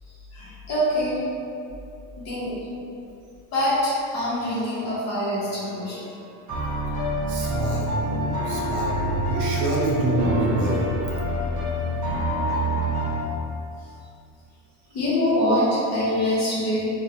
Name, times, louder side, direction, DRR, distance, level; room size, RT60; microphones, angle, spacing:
voice 1, 0.3-1.2 2.2-2.7 3.5-6.0 14.9-16.9, equal, 35° left, -8 dB, 0.6 m, -24 dB
sound 1, 5.4-5.9 6.5-13.2, right 1 dB, 30° right, 0.8 m, -27 dB
voice 2, 7.3-10.9, right 1 dB, 65° right, -4 dB, 0.7 m, -26 dB
2.2 x 2.1 x 2.6 m, 2.6 s
cardioid pair, 170°, 44 cm